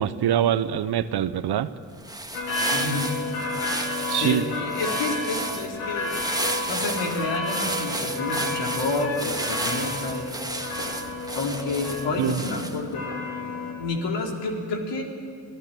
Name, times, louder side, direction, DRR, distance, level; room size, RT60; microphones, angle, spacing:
voice 1, 0.0-1.7 4.1-4.4 12.2-12.4, right 10 dB, 55° right, 15 dB, 1.1 m, -24 dB
sound 1, 1.9-12.9, right 2 dB, 10° right, 2.3 m, -32 dB
sound 2, 2.3-13.7, left 2 dB, 80° left, 4.1 m, -31 dB
voice 2, 2.7-3.1 4.2-6.1 6.7-10.3 11.3-13.1 13.3-15.0, left 3 dB, 65° left, 1 dB, 4.1 m, -29 dB
28.5 x 17.5 x 9.2 m, 2.1 s
hypercardioid pair, 40°, 46 cm